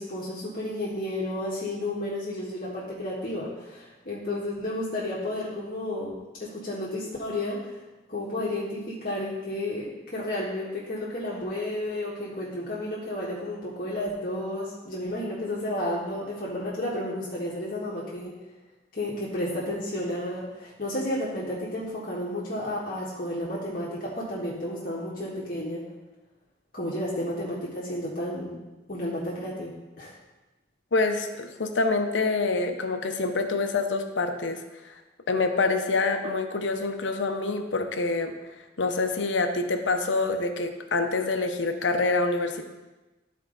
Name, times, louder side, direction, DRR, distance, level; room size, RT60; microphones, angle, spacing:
voice 1, 0.0-7.7 8.1-18.4 18.9-25.8 26.7-28.6 28.9-30.1, left 1 dB, 50° left, -7 dB, 1.5 m, -32 dB
voice 2, 30.9-34.6 35.3-38.3 38.8-42.6, left 3 dB, 85° left, 6 dB, 0.8 m, -26 dB
12.5 x 4.6 x 3.9 m, 1.1 s
head